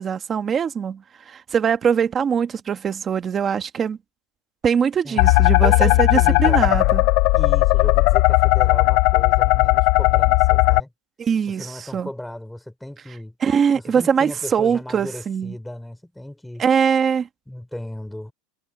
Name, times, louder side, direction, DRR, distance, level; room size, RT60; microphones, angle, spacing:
voice 1, 0.0-4.0 4.6-7.0 11.2-12.1 13.4-15.5 16.6-17.3, right 7 dB, 20° right, 1.3 m, -22 dB
sound 1, 5.2-10.8, left 20 dB, 45° left, 0.7 m, -16 dB
voice 2, 5.6-7.0 7.4-10.9 11.5-13.3 13.7-16.6 17.5-18.3, left 1 dB, ahead, 4.6 m, -35 dB
supercardioid pair, 175°, 0 cm